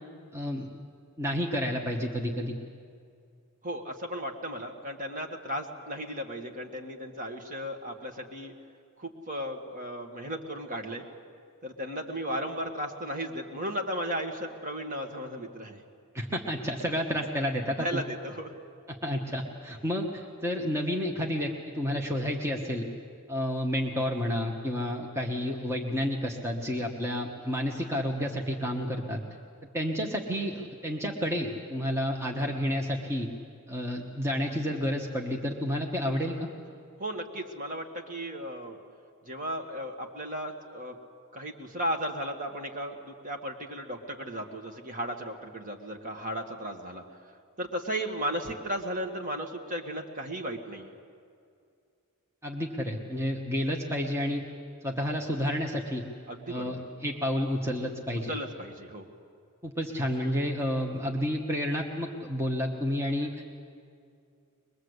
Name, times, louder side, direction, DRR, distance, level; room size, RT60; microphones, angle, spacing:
voice 1, 0.3-0.7 1.2-2.6 16.1-18.0 18.9-22.9 23.3-29.2 29.7-33.3 33.7-36.5 52.4-54.4 54.8-56.0 56.5-58.3 59.6-63.4, equal, 10° right, 0 dB, 1.3 m, -30 dB
voice 2, 3.6-8.5 9.0-11.0 11.6-15.8 17.8-18.5 37.0-38.8 39.3-41.0 41.3-47.0 47.6-50.9 56.3-56.8 58.3-59.1, equal, 35° right, 3 dB, 1.8 m, -35 dB
22.5 x 21.5 x 8.1 m, 2.3 s
head